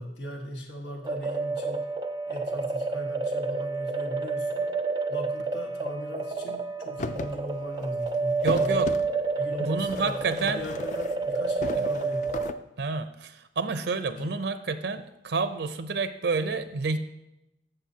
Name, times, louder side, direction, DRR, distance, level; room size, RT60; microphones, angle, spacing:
voice 1, 0.0-1.9 2.3-4.7 5.1-8.9 9.3-12.4 14.2-14.3, equal, 85° left, 1 dB, 1.6 m, -38 dB
sound 1, 1.0-12.5, right 3 dB, 25° right, 0.4 m, -29 dB
sound 2, 7.0-7.4 7.7-9.1 9.8-11.3 11.6-12.5, left 3 dB, 45° left, 0.4 m, -37 dB
voice 2, 8.4-8.9 9.6-10.6 11.7-11.9 12.8-17.0, right 4 dB, 75° right, 10 dB, 0.5 m, -29 dB
13.5 x 6.4 x 2.8 m, 0.91 s
head